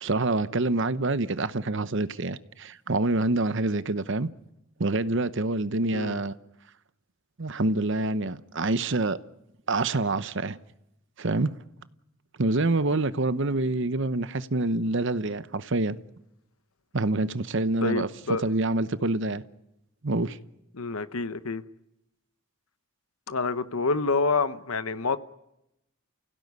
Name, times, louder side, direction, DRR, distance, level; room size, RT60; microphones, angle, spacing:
voice 1, 0.0-4.3 4.8-6.3 7.4-9.2 9.7-10.6 11.2-11.6 12.4-16.0 16.9-18.1 18.4-19.4 20.0-20.4, right 2 dB, 60° right, 0.9 m, -26 dB
voice 2, 17.8-18.4 20.7-21.6 23.3-25.2, left 3 dB, 85° left, 1.0 m, -27 dB
29.5 x 16.5 x 9.6 m
head